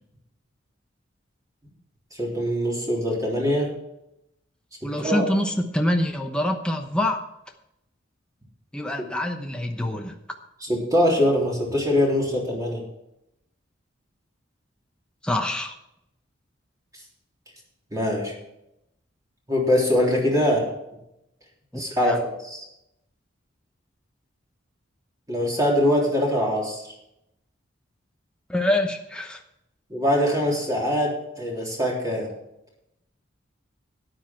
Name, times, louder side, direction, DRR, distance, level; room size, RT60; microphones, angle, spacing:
voice 1, 2.1-3.7 4.8-5.3 10.6-12.8 17.9-18.3 19.5-20.7 21.7-22.7 25.3-26.8 29.9-32.3, left 1 dB, 20° right, -3 dB, 3.6 m, -23 dB
voice 2, 4.8-7.3 8.7-10.2 15.2-15.8 21.7-22.2 28.5-29.4, left 1 dB, 5° left, 2 dB, 0.9 m, -25 dB
13.5 x 9.9 x 4.6 m, 0.83 s
head